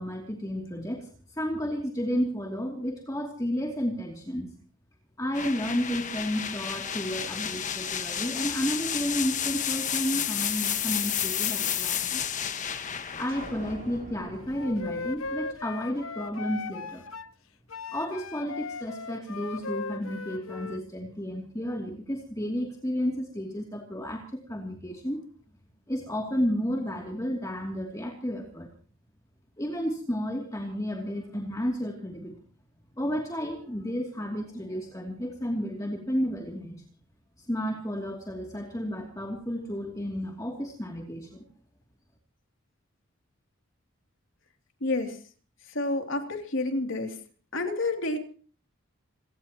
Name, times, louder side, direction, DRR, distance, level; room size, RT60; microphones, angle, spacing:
voice 1, 0.0-4.5 5.2-12.2 13.2-17.1 17.9-25.2 25.9-28.7 29.6-32.3 33.0-36.8 37.4-41.4, equal, 15° left, 1 dB, 2.7 m, -32 dB
sound 1, 5.3-15.1, left 9 dB, 40° left, 1.4 m, -31 dB
sound 2, 13.3-17.0, right 1 dB, 40° right, 3.1 m, -48 dB
Wind instrument woodwind instrument, 14.5-17.3 17.7-20.8, left 4 dB, 85° left, 1.2 m, -37 dB
voice 2, 44.8-45.2 45.7-47.2 47.5-48.2, left 2 dB, 65° left, 5 dB, 2.9 m, -29 dB
27.0 x 18.0 x 3.0 m, 0.41 s
head